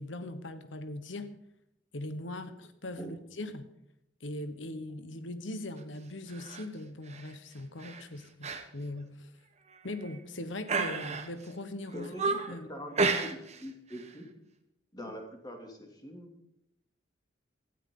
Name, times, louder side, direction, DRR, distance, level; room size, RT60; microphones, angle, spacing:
voice 1, 0.0-1.3 1.9-3.7 4.2-9.3 9.8-12.7 15.0-15.1, left 1 dB, 90° left, 10 dB, 1.3 m, -40 dB
sound 1, 6.3-6.6 7.1-7.3 7.8-8.0 8.4-8.6 9.0-9.1 9.7-10.2 10.7-11.5 11.9-12.6 13.0-13.6 13.9-14.1, right 4 dB, 35° right, 1.2 m, -32 dB
voice 2, 11.9-14.3 14.9-16.3, equal, 20° left, 2 dB, 2.8 m, -44 dB
18.0 x 12.5 x 3.9 m, 0.79 s
head